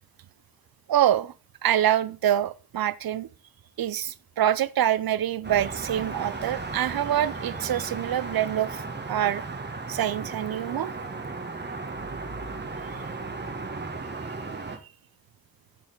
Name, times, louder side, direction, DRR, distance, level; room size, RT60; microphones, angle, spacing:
voice 1, 0.9-1.3 1.6-3.3 3.8-9.4 9.9-10.9, right 11 dB, 80° right, 0.6 m, -25 dB
sound 1, 5.4-14.8, right 3 dB, 30° right, 1.1 m, -35 dB
7.6 x 7.3 x 3.8 m
wide cardioid pair, 110°, 36 cm